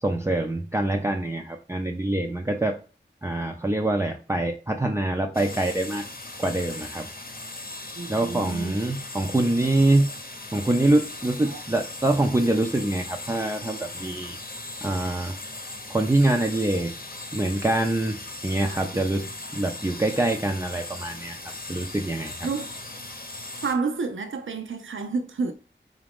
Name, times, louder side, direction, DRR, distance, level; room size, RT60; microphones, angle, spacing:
voice 1, 0.0-2.8 3.2-6.0 6.4-7.1 8.1-10.1 10.5-14.4 14.8-15.4 15.9-16.9 17.3-18.2 18.4-19.2 19.5-21.4 21.7-22.4, right 1 dB, 15° right, 0.4 m, -24 dB
sound 1, 5.3-23.7, left 2 dB, 50° left, 0.8 m, -38 dB
voice 2, 8.0-8.8 11.5-11.6 18.7-19.1 22.4-22.7 23.6-25.5, right 4 dB, 85° right, 0.5 m, -30 dB
3.9 x 2.5 x 3.4 m
wide cardioid pair, 45°, 20 cm